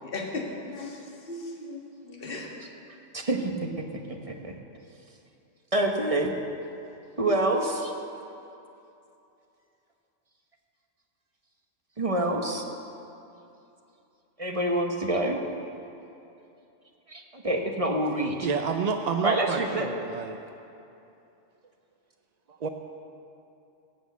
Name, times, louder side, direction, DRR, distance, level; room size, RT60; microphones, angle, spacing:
voice 1, 0.0-1.8 2.1-2.5, left 2 dB, 50° left, -1 dB, 1.8 m, -36 dB
voice 2, 3.1-4.5 5.7-6.3 7.2-7.9 12.0-12.6 14.4-15.4 17.1-18.5 19.2-19.9, right 1 dB, 30° right, 2 dB, 1.0 m, -27 dB
voice 3, 18.4-20.4 22.6-22.7, right 5 dB, 50° right, 5 dB, 0.5 m, -29 dB
16.5 x 6.3 x 8.2 m, 2.8 s
omnidirectional pair, 1.3 m